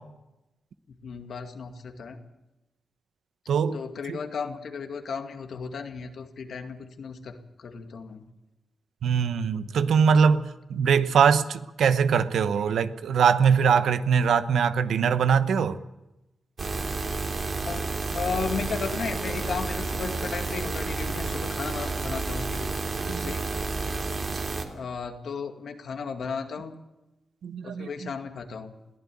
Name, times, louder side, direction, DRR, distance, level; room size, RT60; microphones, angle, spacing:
voice 1, 1.0-2.2 3.7-8.3 17.6-22.7 23.1-23.5 24.7-26.8 27.6-28.7, left 5 dB, 75° left, 2.2 m, -35 dB
voice 2, 3.5-3.8 4.1-4.2 9.0-15.8 23.1-23.3 27.4-28.1, right 6 dB, 85° right, 1.0 m, -22 dB
sound 1, 16.6-24.6, right 3 dB, 50° right, 3.2 m, -30 dB
22.0 x 15.0 x 8.6 m
cardioid pair, 70°, 0 cm